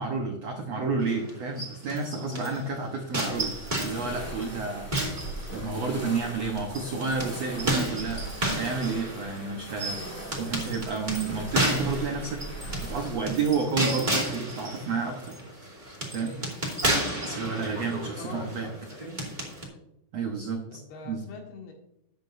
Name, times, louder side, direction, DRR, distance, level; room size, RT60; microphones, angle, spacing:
voice 1, 0.0-3.6 3.8-4.9 5.5-10.0 10.4-15.4 16.1-16.3 17.2-18.7 20.1-20.8 21.0-21.2, right 4 dB, 85° right, 2 dB, 1.4 m, -30 dB
sound 1, 1.0-2.6 3.1-6.0 6.6-19.6, right 1 dB, 15° right, 1.9 m, -32 dB
voice 2, 2.2-2.9 16.2-16.5 17.2-17.8 18.1-19.2 20.7-21.7, left 2 dB, 70° left, 0 dB, 3.7 m, -44 dB
sound 2, 3.3-13.7, right 1 dB, 20° left, 0.4 m, -40 dB
13.5 x 9.6 x 2.7 m, 0.80 s
omnidirectional pair, 4.8 m